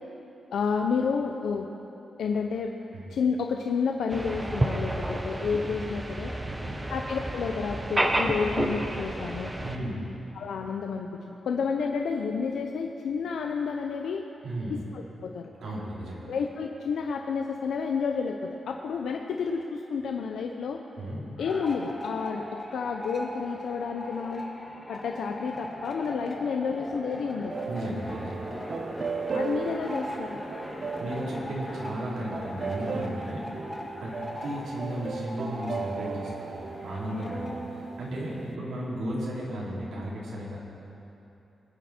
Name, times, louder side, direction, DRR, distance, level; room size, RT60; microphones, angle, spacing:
voice 1, 0.5-1.7 2.2-2.7 3.1-6.3 6.9-9.5 10.3-14.2 14.7-15.5 16.3-20.8 21.4-24.5 24.9-27.5 29.3-30.4, left 5 dB, 85° left, 3 dB, 0.7 m, -30 dB
sound 1, 4.1-9.8, right 1 dB, 15° right, 0.9 m, -30 dB
voice 2, 9.6-10.0 14.4-14.7 15.6-16.3 21.0-21.2 27.7-28.5 31.0-33.4 34.0-40.6, right 1 dB, 90° right, -6 dB, 3.6 m, -35 dB
sound 2, 21.4-37.7, left 1 dB, 15° left, 1.7 m, -39 dB
sound 3, 27.5-38.6, right 6 dB, 50° right, 0.3 m, -37 dB
21.0 x 9.3 x 4.4 m, 3.0 s
wide cardioid pair, 130°, 0 cm